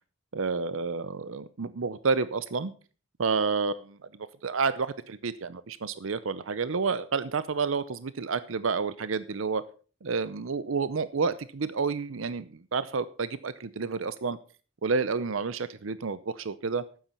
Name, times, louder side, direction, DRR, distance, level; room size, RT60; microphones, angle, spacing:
voice 1, 0.3-2.7 3.2-9.6 10.0-14.4 14.8-16.8, right 4 dB, 75° right, 15 dB, 0.7 m, -30 dB
12.0 x 9.0 x 5.5 m, 0.38 s
head